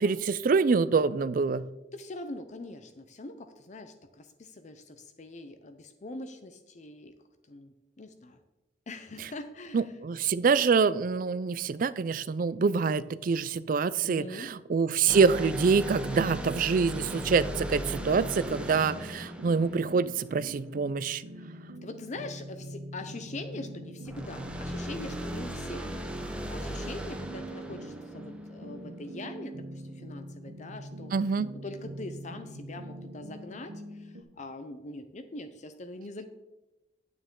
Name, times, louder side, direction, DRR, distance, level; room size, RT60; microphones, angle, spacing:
voice 1, 0.0-1.6 9.7-21.2 31.1-31.5, right 5 dB, 50° right, 16 dB, 0.4 m, -26 dB
voice 2, 1.9-7.1 7.5-8.4 8.9-9.9 14.0-14.5 21.3-21.5 21.8-31.1 31.6-36.3, left 2 dB, 45° left, 8 dB, 0.6 m, -43 dB
sound 1, 15.1-20.6 24.1-28.8, right 1 dB, 5° right, 0.9 m, -38 dB
sound 2, 16.8-34.2, right 1 dB, 85° right, 0.9 m, -44 dB
9.6 x 9.0 x 3.7 m, 1.0 s
head